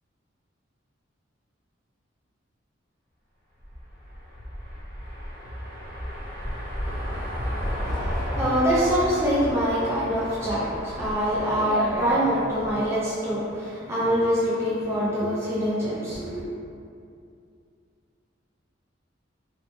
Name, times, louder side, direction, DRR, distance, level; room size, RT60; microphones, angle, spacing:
sound 1, 3.6-12.9, equal, 45° right, 0.9 m, -33 dB
voice 1, 7.8-16.4, equal, 15° right, -9 dB, 0.4 m, -25 dB
2.8 x 2.1 x 2.9 m, 2.5 s
head